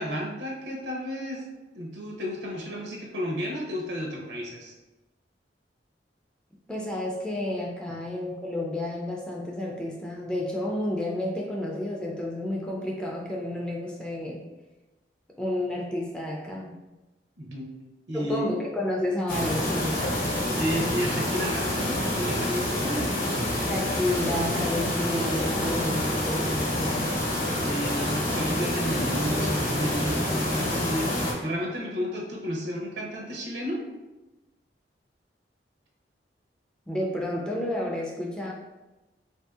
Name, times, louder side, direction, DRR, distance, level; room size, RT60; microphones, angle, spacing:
voice 1, 0.0-1.4 1.7-4.7 17.4-17.7 18.1-18.4 20.5-23.2 27.6-33.8, equal, 80° right, -1 dB, 0.7 m, -32 dB
voice 2, 6.7-14.4 15.4-16.8 18.1-20.1 23.7-27.2 36.9-38.5, left 1 dB, 5° left, -2 dB, 0.3 m, -31 dB
sound 1, 19.3-31.3, left 1 dB, 50° left, 0.8 m, -27 dB
3.1 x 2.6 x 2.3 m, 1.1 s
head